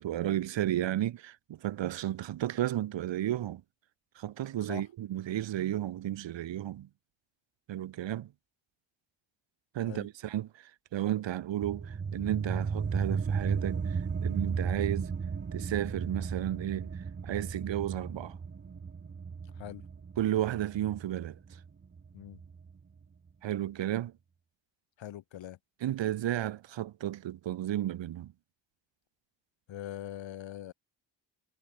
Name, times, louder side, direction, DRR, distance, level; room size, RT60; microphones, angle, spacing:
voice 1, 0.0-3.6 4.2-6.9 7.7-8.3 9.7-15.1 15.5-16.9 17.2-18.4 20.2-21.4 23.4-24.1 25.8-28.3, right 12 dB, 80° right, 1.8 m, -33 dB
sound 1, 11.6-22.7, right 5 dB, 25° right, 0.8 m, -35 dB
voice 2, 25.0-25.6 29.7-30.7, left 12 dB, 85° left, 5.0 m, -42 dB
cardioid pair, 70°, 44 cm